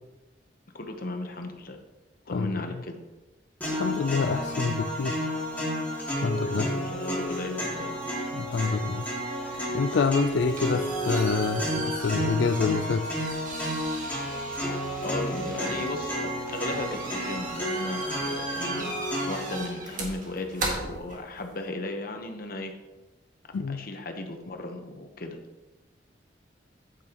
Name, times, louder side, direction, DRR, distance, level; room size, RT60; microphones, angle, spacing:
voice 1, 0.7-1.8 2.3-3.0 6.4-8.0 15.0-19.0 19.3-22.7 23.7-25.4, left 2 dB, 55° left, 5 dB, 1.0 m, -36 dB
voice 2, 2.3-2.6 3.7-5.2 6.2-6.7 8.3-9.1 9.5-13.3 23.5-23.9, left 4 dB, 90° left, 8 dB, 0.4 m, -27 dB
sound 1, 3.6-19.6, equal, 10° left, 2.7 m, -31 dB
sound 2, 10.2-21.7, right 2 dB, 50° right, 1.7 m, -38 dB
8.8 x 8.4 x 3.0 m, 1.1 s
head